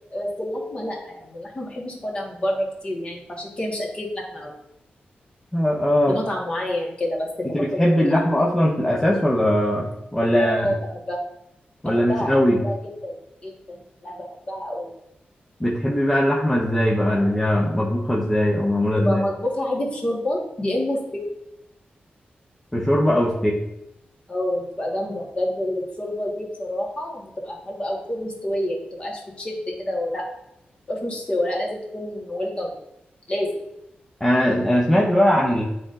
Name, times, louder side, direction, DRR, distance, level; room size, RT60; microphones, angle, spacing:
voice 1, 0.1-4.5 6.1-8.4 10.4-11.2 11.8-12.3 12.6-12.7 13.0-13.1 13.4-14.9 17.2-17.3 19.0-21.2 24.3-30.2 30.9-32.7 33.3-33.6, left 1 dB, 30° left, -2 dB, 1.5 m, -28 dB
voice 2, 5.5-6.2 7.5-10.7 11.8-12.6 15.6-19.2 22.7-23.6 34.2-35.6, equal, 10° left, -3 dB, 0.7 m, -20 dB
9.5 x 4.0 x 2.5 m, 0.84 s
wide cardioid pair, 135°, 4 cm